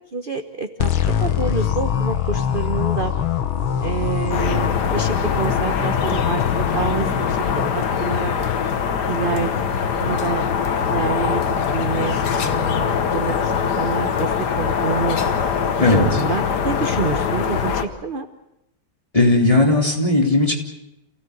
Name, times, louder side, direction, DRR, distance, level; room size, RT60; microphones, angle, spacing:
voice 1, 0.1-0.9 1.2-3.1 3.8-8.3 9.1-9.6 10.0-10.4 10.7-15.2 15.8-18.3, right 5 dB, 35° right, 7 dB, 0.9 m, -27 dB
sound 1, 0.8-7.7, left 9 dB, 75° left, 2.0 m, -23 dB
sound 2, 4.3-17.9, left 7 dB, 55° left, 1.8 m, -22 dB
voice 2, 19.1-20.6, left 2 dB, 15° left, 0 dB, 3.3 m, -16 dB
28.0 x 17.5 x 8.0 m, 0.85 s
omnidirectional pair, 2.3 m